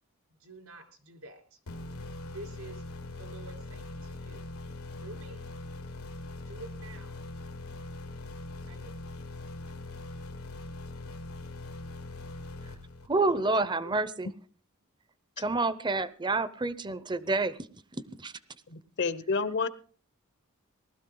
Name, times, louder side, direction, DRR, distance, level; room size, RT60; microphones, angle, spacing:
voice 1, 0.4-1.6 2.3-2.8 3.2-4.5 4.9-5.5 6.4-7.3 8.7-9.1 9.6-9.8, right 2 dB, 80° right, 4 dB, 3.8 m, -48 dB
sound 1, 1.7-13.4, left 2 dB, 85° left, 1.7 m, -42 dB
voice 2, 13.1-14.3 15.4-17.6 17.9-18.3, right 3 dB, 20° right, 16 dB, 0.7 m, -28 dB
voice 3, 18.7-19.7, left 4 dB, 55° left, 15 dB, 0.9 m, -30 dB
19.5 x 13.0 x 3.9 m, 0.42 s
head